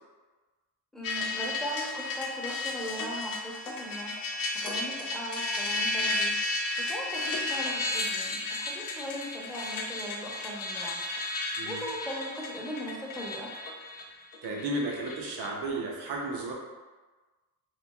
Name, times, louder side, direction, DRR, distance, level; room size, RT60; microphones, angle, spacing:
voice 1, 0.9-4.1 4.5-6.3 6.8-11.0 11.6-13.5, equal, ahead, -5 dB, 0.6 m, -39 dB
sound 1, 1.0-15.5, left 2 dB, 60° left, 0.6 m, -33 dB
voice 2, 14.4-16.5, right 2 dB, 85° right, -1 dB, 0.7 m, -33 dB
3.0 x 2.5 x 2.2 m, 1.3 s
cardioid pair, 85°, 38 cm